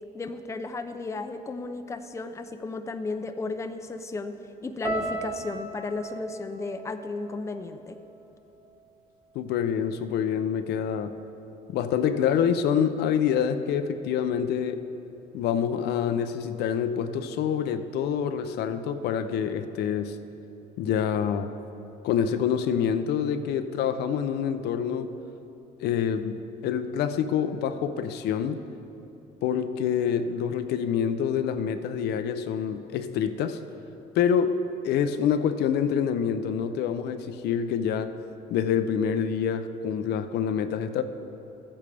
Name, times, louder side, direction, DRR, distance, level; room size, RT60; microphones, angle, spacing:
voice 1, 0.1-4.4 4.6-8.0, left 3 dB, 15° left, 8 dB, 0.5 m, -34 dB
sound 1, 4.8-9.1 9.3-10.1 10.7-10.9, right 2 dB, 25° right, 2.1 m, -38 dB
voice 2, 9.3-11.2 11.7-14.9 15.3-20.2 20.8-21.5 22.0-25.1 25.8-28.6 29.4-33.6 34.1-38.1 38.5-41.0, left 8 dB, 75° left, 10 dB, 0.5 m, -26 dB
14.5 x 8.6 x 3.4 m, 2.9 s
cardioid pair, 110°, 17 cm